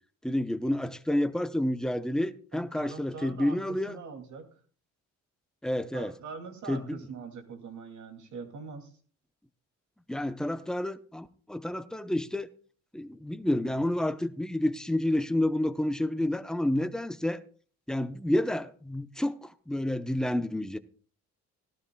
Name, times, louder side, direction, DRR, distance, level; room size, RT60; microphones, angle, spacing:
voice 1, 0.2-4.0 5.6-6.1 6.7-7.0 10.1-12.5 12.9-17.4 17.9-20.8, left 1 dB, ahead, 0.7 m, -29 dB
voice 2, 2.5-4.5 5.9-8.9 16.2-16.3, right 5 dB, 70° right, 2.6 m, -43 dB
17.5 x 12.5 x 2.3 m
cardioid pair, 90°, 30 cm